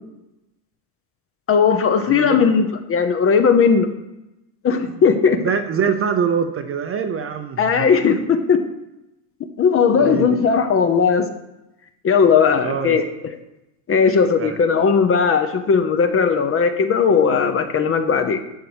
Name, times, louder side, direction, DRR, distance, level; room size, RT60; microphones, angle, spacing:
voice 1, 1.5-3.9 4.6-5.4 7.6-8.6 9.6-11.3 12.0-13.0 13.9-18.4, left 6 dB, 30° left, 8 dB, 0.6 m, -17 dB
voice 2, 2.1-2.4 4.9-5.0 5.4-7.9 10.0-10.4 12.6-13.0 14.4-14.6, right 6 dB, 30° right, 7 dB, 0.6 m, -24 dB
11.0 x 4.5 x 7.9 m, 0.93 s
cardioid pair, 170°, 48 cm